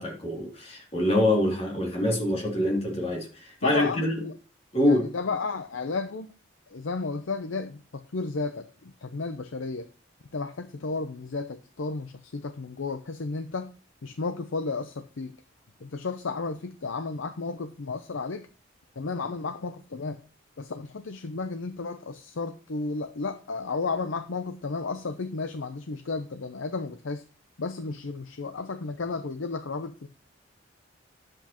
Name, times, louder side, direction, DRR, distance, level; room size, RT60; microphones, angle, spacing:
voice 1, 0.0-4.2 4.7-5.1, left 1 dB, 30° left, 2.9 m, -25 dB
voice 2, 3.6-4.4 4.8-6.3 6.7-9.9 10.3-13.7 14.0-15.4 15.8-18.5 19.0-20.2 20.6-27.2 27.6-30.1, left 4 dB, 75° left, 0.7 m, -33 dB
10.5 x 7.8 x 3.0 m
head